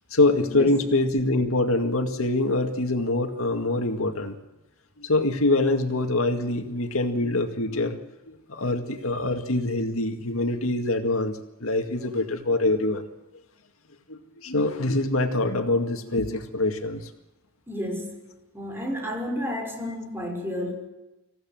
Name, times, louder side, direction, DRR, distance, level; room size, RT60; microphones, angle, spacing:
voice 1, 0.1-4.4 5.0-8.0 8.3-13.1 14.1-17.0, left 2 dB, 80° left, 6 dB, 2.0 m, -24 dB
voice 2, 17.7-18.2 18.5-20.7, equal, 10° right, 1 dB, 6.1 m, -31 dB
26.5 x 16.0 x 7.7 m, 0.99 s
head